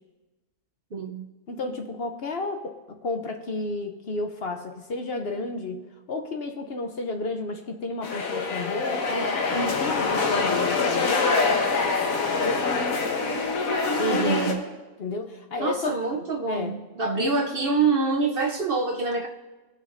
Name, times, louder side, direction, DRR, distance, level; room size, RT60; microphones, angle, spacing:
voice 1, 0.9-1.2 14.0-14.6 15.6-19.3, right 4 dB, 50° right, 2 dB, 0.8 m, -26 dB
voice 2, 1.5-11.4 12.4-12.9 15.0-16.0 16.5-16.7 17.2-17.3, left 3 dB, 55° left, 5 dB, 0.9 m, -32 dB
sound 1, 8.0-14.5, left 4 dB, 80° left, 1.5 m, -25 dB
19.0 x 6.6 x 2.6 m, 1.2 s
omnidirectional pair, 1.4 m